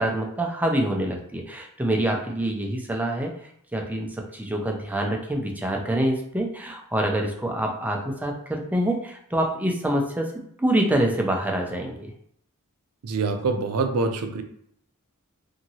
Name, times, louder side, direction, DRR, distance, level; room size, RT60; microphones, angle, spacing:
voice 1, 0.0-3.3 3.7-10.3 10.6-12.1, right 1 dB, 5° right, 1 dB, 0.4 m, -26 dB
voice 2, 13.0-14.4, right 3 dB, 80° right, 6 dB, 0.4 m, -25 dB
2.8 x 2.6 x 2.7 m, 0.68 s
head